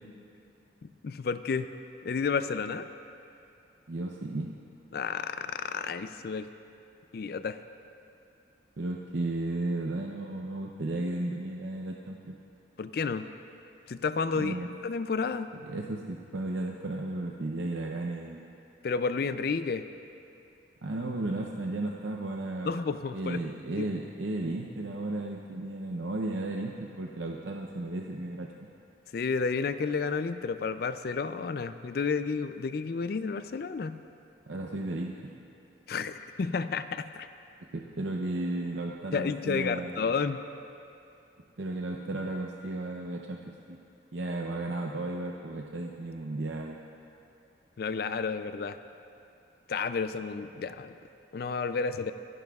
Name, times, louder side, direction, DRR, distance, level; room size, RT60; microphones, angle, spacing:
voice 1, 1.0-1.7 2.0-2.9 4.9-6.5 7.1-7.6 12.8-13.3 13.9-14.6 14.8-15.5 18.8-19.8 22.6-23.5 23.8-23.9 29.1-33.9 35.9-37.3 39.1-40.4 47.8-48.8 49.7-50.9 51.3-52.1, left 5 dB, 55° left, 11 dB, 0.4 m, -31 dB
voice 2, 3.9-4.5 8.8-12.4 14.3-14.7 15.7-18.5 20.8-22.7 23.1-28.5 34.5-35.3 37.7-39.9 41.6-43.8 44.1-46.8, right 2 dB, 75° right, 0 dB, 0.7 m, -34 dB
27.0 x 11.0 x 2.4 m, 2.6 s
head